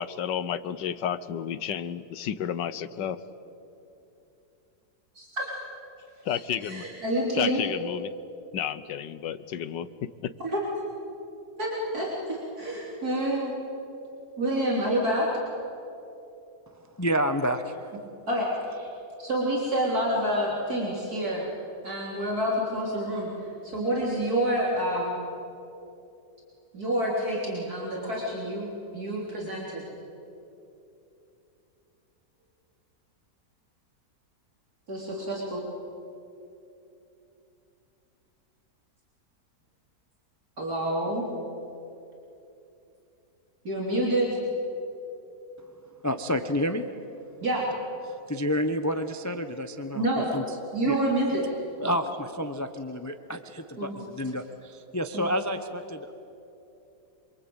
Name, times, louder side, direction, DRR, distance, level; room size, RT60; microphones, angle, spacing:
voice 1, 0.0-3.2 6.2-6.8 7.3-8.1 8.5-10.3, left 9 dB, 85° left, 14 dB, 1.6 m, -31 dB
voice 2, 5.1-5.6 6.6-7.6 10.4-10.6 11.6-13.5 14.4-15.3 18.3-18.9 19.2-21.5 21.8-23.3 23.6-25.2 26.7-29.8 34.9-35.6 40.6-41.2 43.6-44.3 47.4-47.6 49.9-50.3 50.7-51.4 53.8-53.9 55.1-55.3, right 1 dB, 60° right, -4 dB, 4.3 m, -28 dB
voice 3, 16.7-17.9 46.0-46.8 48.3-50.1 50.3-50.4 50.9-51.0 51.8-56.1, equal, 15° left, 8 dB, 0.7 m, -29 dB
27.5 x 23.5 x 8.9 m, 2.8 s
omnidirectional pair, 1.9 m